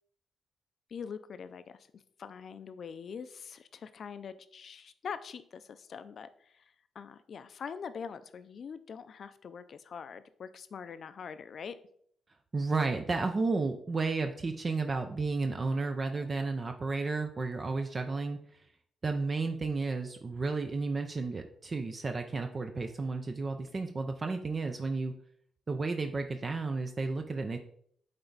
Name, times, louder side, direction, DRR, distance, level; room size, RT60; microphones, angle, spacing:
voice 1, 0.9-6.6 7.0-11.8, left 6 dB, 60° left, 12 dB, 0.5 m, -43 dB
voice 2, 12.5-18.4 19.0-25.1 25.7-27.6, right 3 dB, 40° right, 5 dB, 0.6 m, -32 dB
8.9 x 3.4 x 4.0 m, 0.65 s
cardioid pair, 65°, 0 cm